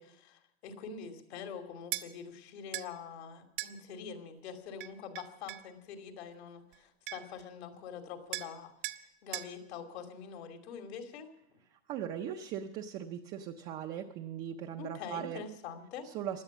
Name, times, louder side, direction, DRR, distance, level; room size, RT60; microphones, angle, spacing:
voice 1, 0.0-8.7 9.2-11.3 14.8-16.1, left 6 dB, 75° left, 6 dB, 2.7 m, -45 dB
sound 1, 1.9-2.1 2.7-2.9 3.6-3.8 4.8-5.7 6.7-6.8 7.1-7.4 8.3-8.6 8.8-9.0 9.3-9.5, right 16 dB, 55° right, 0.9 m, -39 dB
voice 2, 11.9-15.4 16.0-16.4, right 9 dB, 20° right, 3 dB, 0.5 m, -39 dB
17.0 x 11.5 x 7.1 m, 0.79 s
supercardioid pair, 180°, 33 cm